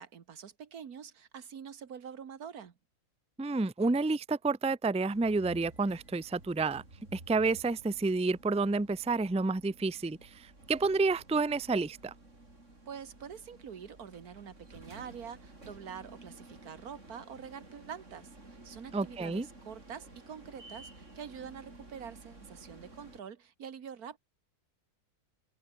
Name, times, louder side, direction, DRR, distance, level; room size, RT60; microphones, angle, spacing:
voice 1, 0.0-2.7 12.9-24.2, right 7 dB, 80° right, 1.9 m, -46 dB
voice 2, 3.4-6.8 7.1-12.1 18.9-19.5, right 3 dB, 5° right, 0.5 m, -30 dB
sound 1, 5.1-23.2, right 2 dB, 55° right, 5.6 m, -53 dB
omnidirectional pair, 1.6 m